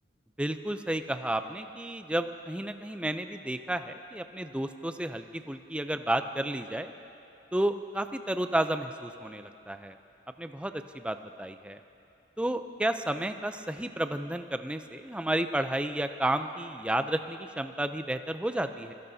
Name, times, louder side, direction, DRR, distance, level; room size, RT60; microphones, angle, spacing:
voice 1, 0.4-6.9 7.5-10.0 10.4-11.8 12.4-18.9, right 1 dB, 5° right, 8 dB, 0.4 m, -32 dB
27.0 x 17.0 x 2.7 m, 2.9 s
head